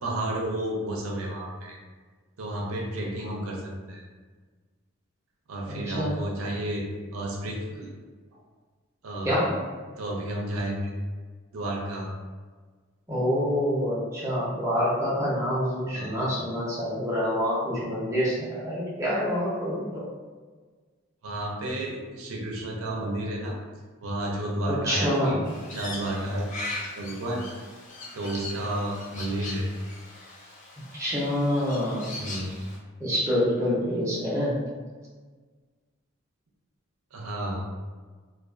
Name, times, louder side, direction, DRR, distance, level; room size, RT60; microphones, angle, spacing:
voice 1, 0.0-1.8 2.4-4.0 5.5-6.8 7.1-7.9 8.3-8.4 9.0-9.4 10.0-10.8 11.5-12.1 15.9-16.2 21.2-23.6 24.0-25.4 25.7-27.4 28.1-29.7 32.1-32.7 37.1-37.6, right 1 dB, 90° right, -1 dB, 0.5 m, -31 dB
voice 2, 5.7-6.3 9.2-9.6 13.1-20.0 24.7-25.4 30.9-32.1 33.0-34.6, equal, 15° right, -8 dB, 0.6 m, -26 dB
Crow, 25.4-32.8, left 2 dB, 35° left, 0.4 m, -40 dB
2.3 x 2.3 x 2.3 m, 1.4 s
head